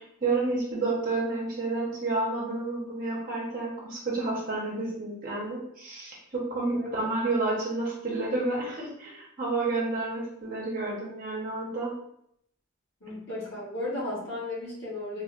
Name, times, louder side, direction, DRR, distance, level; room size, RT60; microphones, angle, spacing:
voice 1, 0.0-11.9, right 3 dB, 40° right, -4 dB, 0.9 m, -30 dB
voice 2, 13.0-15.2, left 2 dB, 60° left, -6 dB, 1.2 m, -35 dB
3.6 x 2.4 x 2.4 m, 0.74 s
head